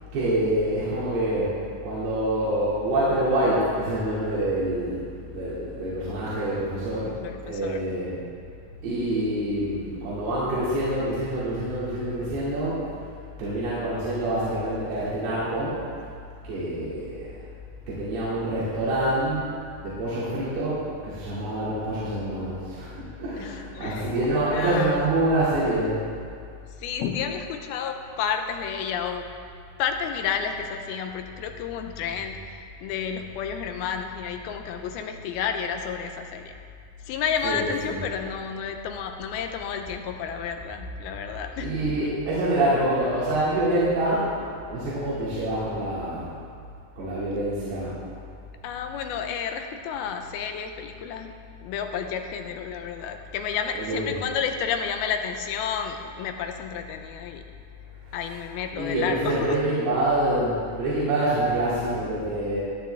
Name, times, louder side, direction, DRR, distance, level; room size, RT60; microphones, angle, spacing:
voice 1, 0.1-1.5 1.8-7.1 7.4-8.2 8.8-13.1 13.4-15.9 16.4-17.3 17.9-19.6 19.8-25.9 37.4-38.0 41.6-44.4 44.7-46.3 47.0-48.0 53.7-54.1 58.1-58.2 58.7-62.6, right 1 dB, 80° right, -10 dB, 4.5 m, -26 dB
voice 2, 7.2-7.8 23.4-24.1 24.4-25.0 26.8-29.3 29.8-36.5 37.1-41.7 48.6-51.3 51.6-57.4 58.1-59.6, left 7 dB, 80° left, 5 dB, 2.5 m, -31 dB
20.0 x 9.8 x 3.4 m, 2.3 s
omnidirectional pair, 4.6 m